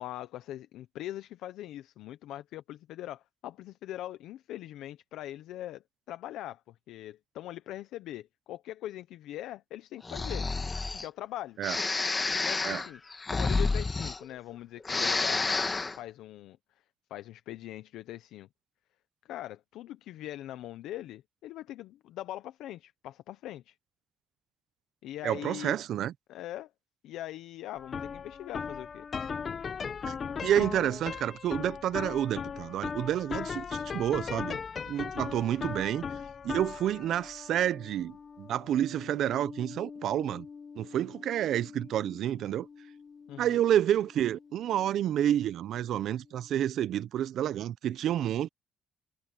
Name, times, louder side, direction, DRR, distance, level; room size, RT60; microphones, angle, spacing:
voice 1, 0.0-10.5 10.9-11.6 12.1-13.0 13.3-15.7 16.0-16.6 17.1-18.5 19.2-23.8 25.0-25.8 26.3-26.7 27.0-29.1 43.3-43.6, left 14 dB, 90° left, 0.7 m, -42 dB
Breathing, 10.0-11.1 11.6-14.5 14.8-16.0, left 3 dB, 25° left, 1.5 m, -30 dB
voice 2, 25.2-26.1 30.1-30.2 30.4-34.6 34.9-36.0 36.4-40.5 40.8-42.7 43.4-48.5, right 11 dB, 75° right, 0.7 m, -29 dB
sound 1, 27.8-45.0, left 6 dB, 45° left, 1.1 m, -39 dB
cardioid pair, 90°, 0 cm